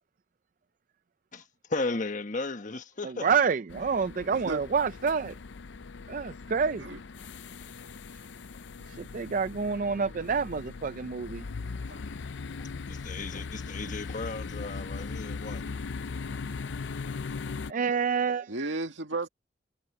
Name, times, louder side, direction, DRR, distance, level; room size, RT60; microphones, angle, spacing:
voice 1, 1.3-3.3 12.1-12.2 12.6-15.6, left 3 dB, 45° left, 1.3 m, -35 dB
voice 2, 3.0-5.4 6.1-7.0 8.9-11.5 17.7-18.8, right 5 dB, 45° right, 0.4 m, -28 dB
sound 1, 3.7-17.7, left 4 dB, 70° left, 0.5 m, -39 dB
voice 3, 4.3-4.6 6.8-7.0 11.9-12.0 18.5-19.3, right 3 dB, 80° right, 2.0 m, -34 dB
head